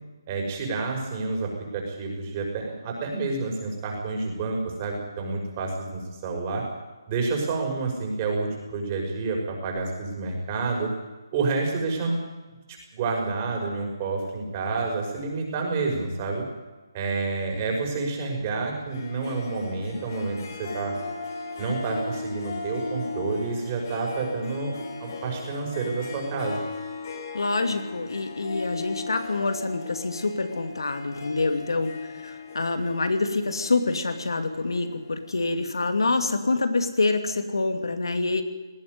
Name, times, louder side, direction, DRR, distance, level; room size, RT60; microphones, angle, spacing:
voice 1, 0.3-6.6 7.1-10.9 11.3-12.2 12.9-16.4 16.9-20.9 21.6-24.7 25.0-26.6, right 3 dB, 25° right, 0 dB, 5.9 m, -29 dB
Harp, 18.9-35.7, left 3 dB, 50° left, 5.1 m, -38 dB
voice 2, 27.3-38.4, left 3 dB, 85° left, 7 dB, 2.7 m, -26 dB
19.0 x 15.5 x 9.7 m, 1.2 s
hypercardioid pair, 160°, 2 cm